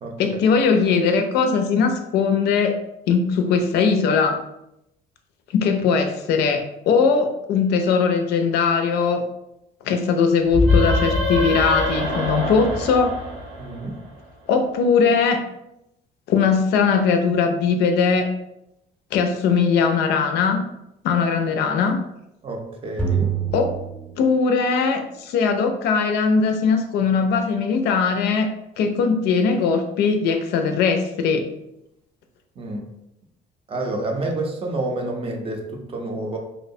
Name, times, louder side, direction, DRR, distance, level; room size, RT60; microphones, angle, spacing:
voice 1, 0.2-2.8 3.1-4.4 5.5-9.2 9.9-13.2 14.5-15.4 16.3-18.3 19.1-20.6 21.0-22.0 23.5-23.8 24.2-28.5 28.8-31.5, left 5 dB, 75° left, 6 dB, 0.4 m, -20 dB
sound 1, 10.5-14.1, left 2 dB, 85° right, 0.7 m, -23 dB
voice 2, 13.6-13.9 22.4-23.3 32.6-32.8 33.7-36.4, right 2 dB, 35° right, 2 dB, 0.5 m, -28 dB
sound 2, 23.0-24.8, right 7 dB, 5° left, 0.6 m, -26 dB
2.7 x 2.1 x 2.6 m, 0.85 s
cardioid pair, 110°, 17 cm